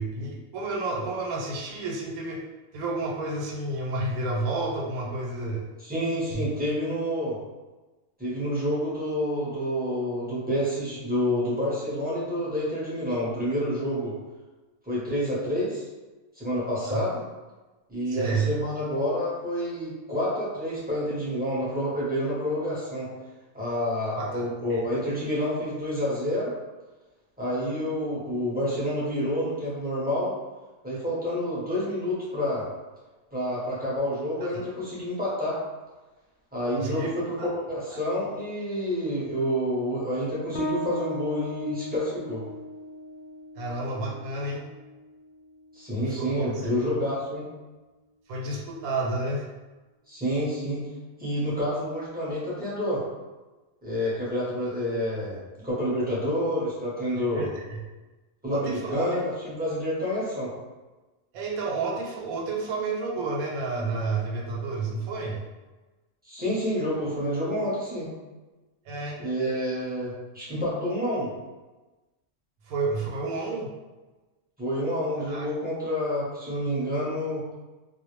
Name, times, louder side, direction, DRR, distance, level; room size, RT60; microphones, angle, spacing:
voice 1, 0.0-2.4 2.7-5.6 6.3-6.5 16.9-17.1 18.1-18.5 24.2-24.8 34.5-34.6 36.7-37.1 37.4-37.5 43.6-44.6 45.9-46.7 48.3-49.4 57.2-57.8 58.5-59.0 61.3-65.4 66.9-67.0 68.9-69.2 72.7-73.7 75.3-75.5, right 3 dB, 90° right, -1 dB, 1.0 m, -30 dB
voice 2, 5.8-7.4 8.2-14.1 14.9-15.8 16.4-17.2 17.9-23.1 23.5-26.5 27.4-30.3 30.8-32.6 33.3-35.6 36.5-42.4 45.7-47.5 50.1-50.8 51.2-53.0 53.8-57.5 58.4-60.5 66.2-68.1 69.2-71.3 74.6-77.4, equal, 10° right, -9 dB, 0.5 m, -28 dB
Bass guitar, 40.5-47.7, equal, 65° left, 0.6 m, -38 dB
2.4 x 2.0 x 3.0 m, 1.2 s
omnidirectional pair, 1.4 m